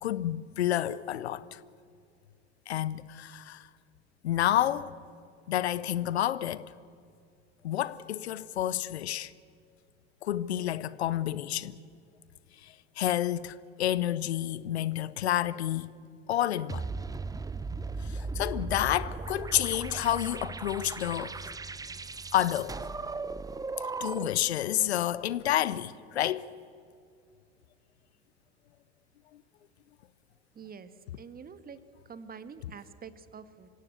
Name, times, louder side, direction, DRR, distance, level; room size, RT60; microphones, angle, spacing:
voice 1, 0.0-1.6 2.7-3.7 4.2-4.9 5.5-6.7 7.6-9.3 10.2-11.8 12.6-16.0 16.3-16.9 18.0-21.4 22.3-22.8 24.0-26.5, left 12 dB, 75° left, 0.8 m, -29 dB
sound 1, 16.7-24.5, right 3 dB, 10° right, 0.7 m, -37 dB
voice 2, 30.5-30.9 31.2-31.8 32.0-33.7, right 6 dB, 25° right, 1.5 m, -46 dB
25.5 x 16.5 x 8.2 m
figure-of-eight pair, 75°, 33 cm